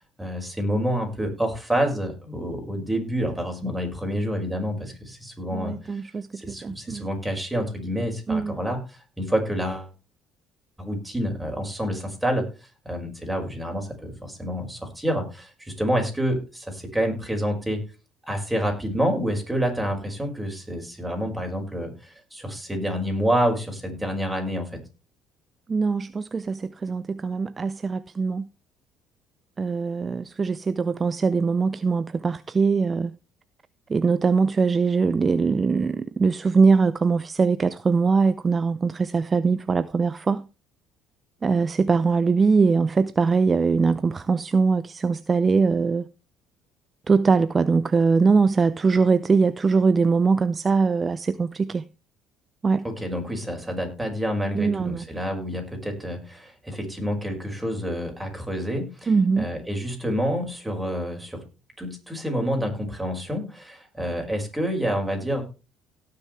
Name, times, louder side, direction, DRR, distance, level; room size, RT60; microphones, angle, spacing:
voice 1, 0.2-6.0 6.4-9.9 10.8-12.4 12.8-17.8 18.3-24.7 52.8-61.4 61.8-65.4, equal, 5° right, 5.7 m, -28 dB
voice 2, 5.5-7.1 8.3-8.6 25.7-28.5 29.6-33.1 33.9-40.5 41.4-46.1 47.1-51.8 52.6-52.8 54.5-55.0 59.1-59.5, right 4 dB, 30° right, 0.6 m, -22 dB
17.5 x 6.8 x 3.3 m
supercardioid pair, 80°, 0 cm